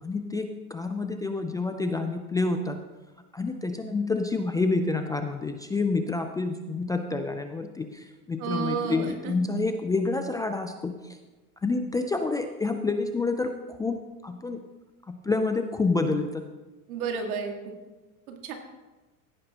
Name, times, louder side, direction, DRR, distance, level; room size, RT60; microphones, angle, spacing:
voice 1, 0.0-2.8 3.3-11.2 11.6-14.6 15.1-16.4, left 3 dB, 10° left, 6 dB, 0.3 m, -28 dB
voice 2, 8.4-9.3 16.9-17.7 18.3-18.5, right 6 dB, 80° right, 3 dB, 2.1 m, -31 dB
16.0 x 9.6 x 2.9 m, 1.2 s
supercardioid pair, 120°, 42 cm